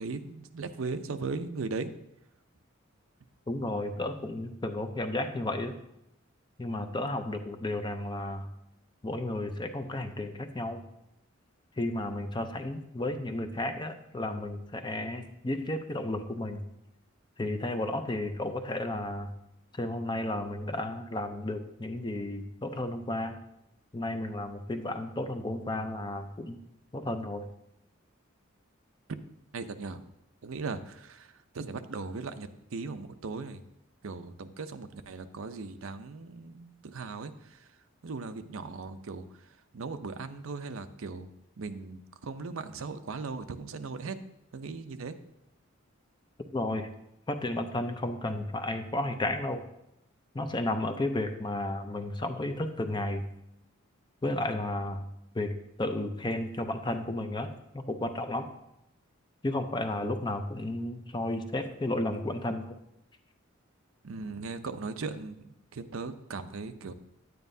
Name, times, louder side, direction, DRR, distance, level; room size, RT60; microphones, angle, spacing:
voice 1, 0.0-1.9 29.5-30.0 30.4-33.6 34.0-37.7 38.0-39.3 39.7-41.3 41.6-44.2 44.5-45.2 64.0-66.9, right 4 dB, 80° right, 10 dB, 0.6 m, -38 dB
voice 2, 3.5-5.8 6.6-8.5 9.0-10.8 11.8-16.6 17.4-19.3 19.7-23.4 23.9-26.6 26.9-27.5 46.5-46.9 47.3-49.6 50.3-53.2 54.2-55.1 55.3-58.5 59.4-62.8, left 1 dB, 20° left, 7 dB, 0.6 m, -33 dB
9.8 x 9.3 x 2.7 m, 0.83 s
head